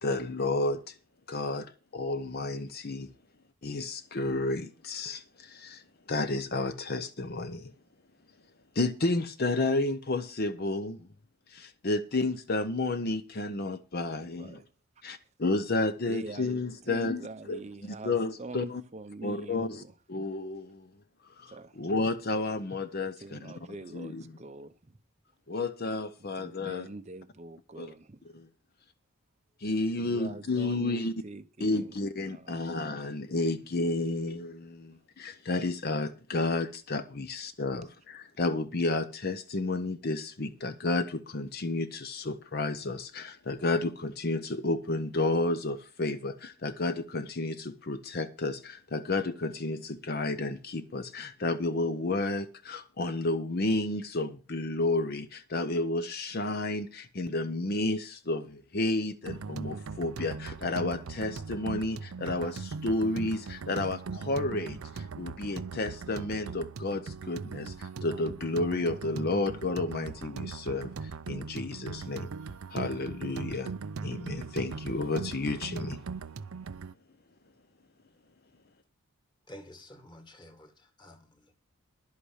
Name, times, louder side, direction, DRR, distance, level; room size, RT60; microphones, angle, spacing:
voice 1, 0.0-1.0 1.3-3.1 3.6-7.7 8.7-11.1 11.5-14.6 15.0-17.6 18.0-18.8 19.2-19.8 20.1-20.9 21.4-23.5 23.9-24.2 25.5-26.9 27.8-27.9 28.3-28.5 29.6-31.1 31.6-72.3 72.7-73.7 74.0-76.0, left 2 dB, 45° left, 0.7 m, -31 dB
voice 2, 14.2-14.6 15.1-15.2 16.1-19.9 21.5-21.8 23.0-25.0 26.2-28.2 29.9-32.0 32.2-33.1 34.9-35.0, right 2 dB, 30° right, 0.7 m, -44 dB
sound 1, 59.2-76.9, right 5 dB, 70° right, 0.5 m, -40 dB
voice 3, 79.5-81.5, left 1 dB, 20° left, 1.8 m, -50 dB
11.5 x 8.4 x 6.4 m
head